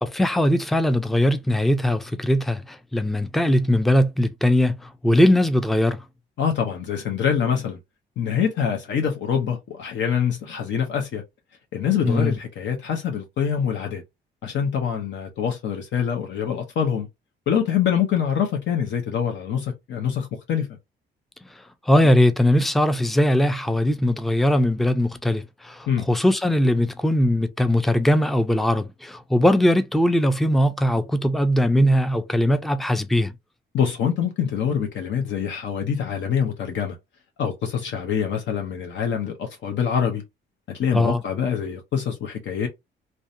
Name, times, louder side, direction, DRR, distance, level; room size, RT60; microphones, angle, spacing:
voice 1, 0.0-6.0 12.0-12.4 21.9-33.3 40.9-41.2, left 1 dB, ahead, 0.4 m, -20 dB
voice 2, 6.4-7.8 8.2-11.2 11.7-14.0 14.4-17.1 17.5-20.7 25.9-26.1 33.7-37.0 37.4-40.2 40.7-42.7, left 8 dB, 70° left, 0.7 m, -25 dB
2.6 x 2.2 x 2.5 m
cardioid pair, 90°, 20 cm